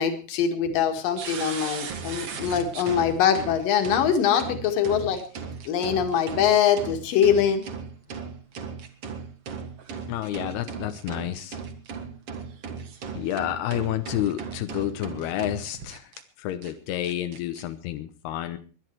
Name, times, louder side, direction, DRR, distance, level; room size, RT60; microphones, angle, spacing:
voice 1, 0.0-5.2 5.7-7.6, left 8 dB, 65° left, 6 dB, 3.5 m, -23 dB
sound 1, 1.2-16.2 16.6-16.7 17.0-17.6, right 6 dB, 50° right, 2.1 m, -37 dB
voice 2, 10.1-11.6 13.2-16.1 16.4-18.6, left 12 dB, 90° left, 9 dB, 3.0 m, -30 dB
21.0 x 11.0 x 4.7 m, 0.37 s
omnidirectional pair, 4.5 m